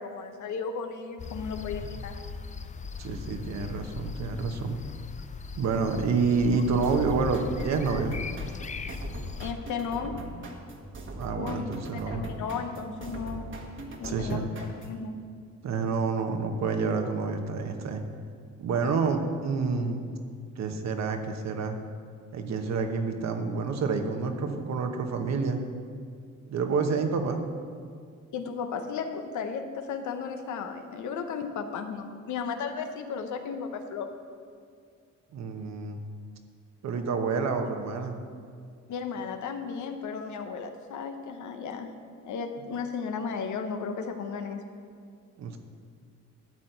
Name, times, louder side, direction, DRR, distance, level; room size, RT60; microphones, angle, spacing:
voice 1, 0.0-2.2 9.4-10.2 11.4-13.5 14.0-14.5 14.8-15.1 28.3-34.1 38.9-41.9 42.2-44.6, left 5 dB, 75° left, 6 dB, 1.0 m, -34 dB
sound 1, 1.2-9.5, left 5 dB, 25° left, 0.5 m, -39 dB
voice 2, 3.0-4.8 5.6-8.2 11.2-12.2 14.0-14.5 15.6-18.0 18.6-20.1 20.6-21.8 22.3-25.6 26.5-27.4 35.3-36.0 36.8-38.2 45.4-45.6, right 4 dB, 60° right, 5 dB, 1.1 m, -28 dB
sound 2, 6.8-15.0, right 1 dB, 40° right, 1.4 m, -41 dB
12.0 x 4.2 x 8.0 m, 2.2 s
cardioid pair, 90°, 30 cm